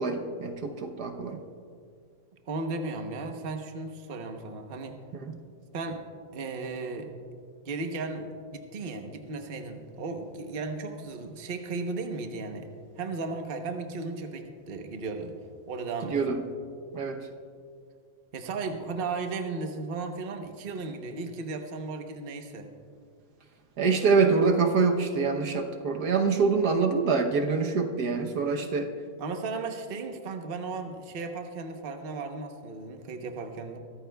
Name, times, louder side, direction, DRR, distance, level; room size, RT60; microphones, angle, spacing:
voice 1, 0.0-1.4 5.2-5.3 16.1-16.4 16.9-17.2 23.8-28.9, right 4 dB, 70° right, 4 dB, 1.4 m, -25 dB
voice 2, 2.5-5.0 5.7-6.1 6.3-7.1 7.6-12.7 13.0-15.3 15.7-16.4 18.3-22.7 29.2-33.8, right 3 dB, 40° right, 4 dB, 1.0 m, -35 dB
23.5 x 14.0 x 2.3 m, 2.2 s
omnidirectional pair, 1.8 m